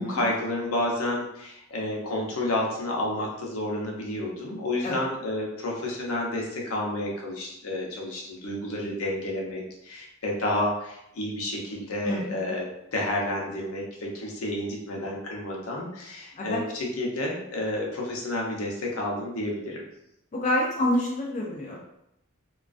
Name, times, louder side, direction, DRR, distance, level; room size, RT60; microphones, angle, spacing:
voice 1, 0.0-19.9, left 1 dB, 85° left, -2 dB, 0.6 m, -30 dB
voice 2, 12.0-12.5 16.4-16.6 20.3-21.8, left 1 dB, 35° left, -3 dB, 0.3 m, -27 dB
2.3 x 2.3 x 2.4 m, 0.79 s
head